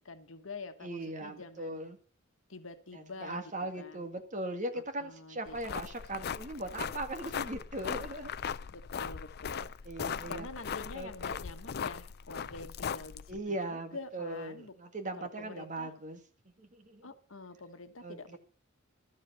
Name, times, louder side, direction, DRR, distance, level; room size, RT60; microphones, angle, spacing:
voice 1, 0.0-1.8 2.5-4.0 5.0-5.6 8.7-9.8 10.1-14.7 15.2-15.9 17.0-18.4, left 3 dB, 75° left, 1.4 m, -47 dB
voice 2, 0.8-2.0 2.9-8.3 9.9-10.5 10.9-11.4 13.3-16.2 16.6-17.1 18.0-18.4, right 1 dB, 40° right, 1.8 m, -39 dB
sound 1, 5.5-13.4, left 7 dB, 55° left, 0.5 m, -39 dB
13.0 x 7.4 x 7.1 m
head